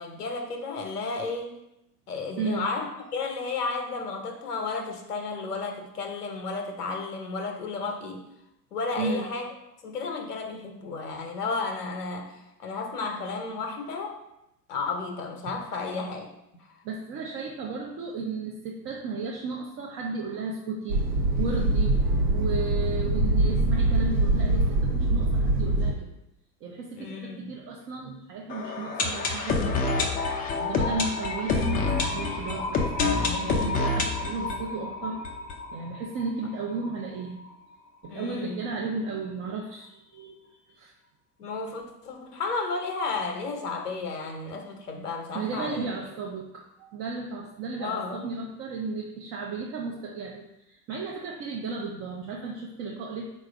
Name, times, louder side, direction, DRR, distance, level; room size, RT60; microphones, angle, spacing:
voice 1, 0.0-1.6 2.1-8.3 8.7-9.5 9.8-14.2 14.7-16.3 27.0-27.6 38.1-38.6 41.4-46.0 47.8-48.2, left 4 dB, 75° left, 4 dB, 0.7 m, -33 dB
voice 2, 2.4-2.7 9.0-9.3 16.8-21.0 21.4-21.9 22.3-26.1 26.6-30.0 30.5-35.2 35.7-37.4 38.0-40.9 45.3-53.2, right 4 dB, 30° right, -1 dB, 0.6 m, -34 dB
sound 1, 20.9-25.9, right 2 dB, 65° right, 0.8 m, -23 dB
sound 2, 28.5-36.3 36.5-36.6 36.8-36.9 37.4-37.5, left 3 dB, 20° left, 0.4 m, -28 dB
4.0 x 2.3 x 4.6 m, 0.84 s
figure-of-eight pair, 80°, 47 cm